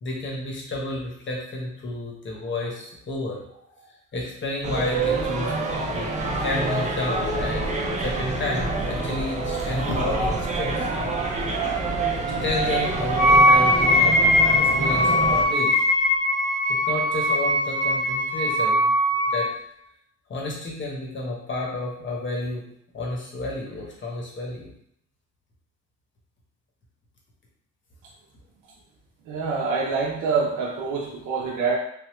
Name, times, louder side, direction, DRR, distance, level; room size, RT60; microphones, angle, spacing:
voice 1, 0.0-3.4 3.8-6.1 6.4-7.6 8.0-10.9 12.3-15.7 16.7-18.9 19.3-19.5 20.3-22.6 22.9-24.7, left 2 dB, 35° left, -2 dB, 1.0 m, -31 dB
sound 1, 4.6-15.4, right 3 dB, 25° right, 0.5 m, -26 dB
Wind instrument woodwind instrument, 13.2-19.5, left 1 dB, 80° left, 1.1 m, -20 dB
voice 2, 29.3-31.8, right 5 dB, 70° right, -3 dB, 0.6 m, -26 dB
3.5 x 2.1 x 3.0 m, 0.71 s
cardioid pair, 120°, 31 cm